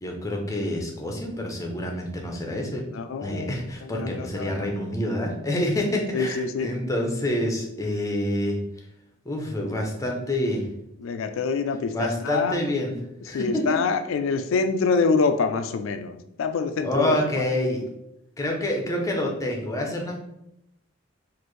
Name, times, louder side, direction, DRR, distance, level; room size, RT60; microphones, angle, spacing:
voice 1, 0.0-2.8 3.2-8.6 9.3-10.6 11.9-13.0 13.2-13.8 16.8-17.8 18.4-20.2, left 1 dB, 15° left, 1 dB, 0.6 m, -27 dB
voice 2, 2.9-4.7 6.1-6.7 11.0-12.6 13.3-17.2, left 4 dB, 80° left, 8 dB, 0.3 m, -26 dB
4.3 x 2.5 x 3.1 m, 0.82 s
head